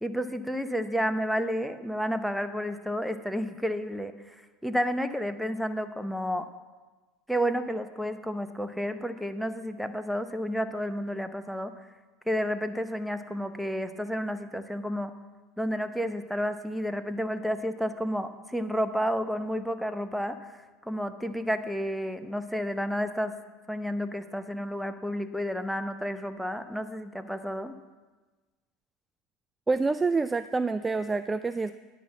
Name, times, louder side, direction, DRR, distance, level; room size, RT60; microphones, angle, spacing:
voice 1, 0.0-4.3 4.6-6.5 7.3-11.7 12.3-15.1 15.6-23.3 23.7-27.7, equal, ahead, 9 dB, 0.7 m, -31 dB
voice 2, 29.7-31.8, right 3 dB, 15° right, 12 dB, 0.3 m, -27 dB
10.0 x 6.2 x 7.2 m, 1.3 s
hypercardioid pair, 95°, 0 cm